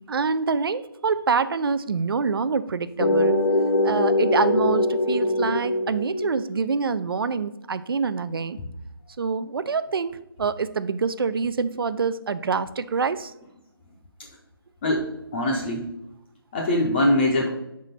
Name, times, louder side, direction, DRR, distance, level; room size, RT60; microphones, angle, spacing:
voice 1, 0.1-3.4 3.8-8.6 9.2-10.1 10.4-13.3, right 5 dB, 70° right, 13 dB, 0.4 m, -26 dB
sound 1, 3.0-6.5, left 1 dB, 70° left, 0.8 m, -22 dB
voice 2, 14.8-15.8 16.5-17.5, left 1 dB, 25° left, -1 dB, 0.6 m, -22 dB
4.8 x 3.7 x 5.6 m, 0.88 s
figure-of-eight pair, 160°, 13 cm